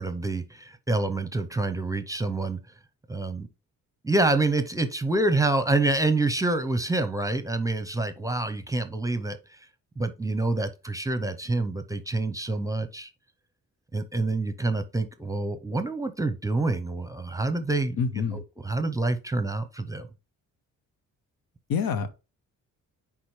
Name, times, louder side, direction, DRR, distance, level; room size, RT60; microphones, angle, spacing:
voice 1, 0.0-2.6 3.1-3.5 4.0-9.4 10.0-13.1 13.9-18.0 18.3-20.1, right 2 dB, 10° right, 0.7 m, -27 dB
voice 2, 18.0-18.4 21.7-22.1, left 6 dB, 75° left, 0.9 m, -26 dB
9.5 x 3.7 x 3.2 m
cardioid pair, 70°, 35 cm